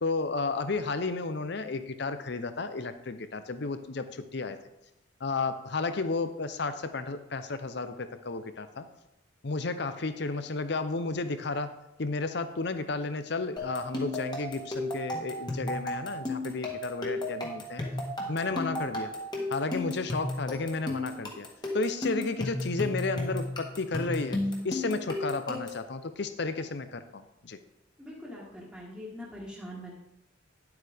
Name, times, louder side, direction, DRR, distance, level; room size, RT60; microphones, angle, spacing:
voice 1, 0.0-4.6 5.2-8.8 9.4-11.7 12.0-17.8 18.3-19.1 19.5-21.5 21.7-24.4 24.6-27.6, left 3 dB, 55° left, 10 dB, 0.7 m, -32 dB
sound 1, 13.6-25.9, left 2 dB, 20° left, 1.4 m, -34 dB
voice 2, 28.0-30.0, equal, 5° right, -6 dB, 1.5 m, -43 dB
10.5 x 7.9 x 3.5 m, 0.90 s
head